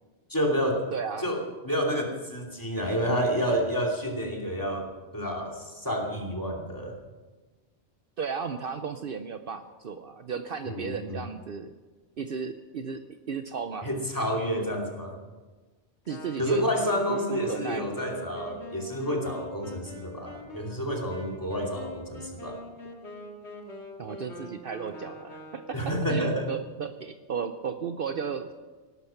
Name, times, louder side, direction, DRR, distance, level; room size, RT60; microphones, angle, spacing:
voice 1, 0.3-0.9 1.2-1.4 1.6-4.9 5.1-6.9 10.6-11.2 13.8-15.1 16.4-22.6 25.7-26.5, equal, 15° left, 0 dB, 2.8 m, -29 dB
voice 2, 0.9-1.3 8.2-11.7 12.2-13.0 13.3-13.9 16.1-16.6 17.1-17.8 24.0-28.5, right 6 dB, 60° right, 8 dB, 0.9 m, -34 dB
Wind instrument woodwind instrument, 16.1-26.0, left 1 dB, 75° left, 2.2 m, -43 dB
18.0 x 12.5 x 5.8 m, 1.3 s
omnidirectional pair, 1.1 m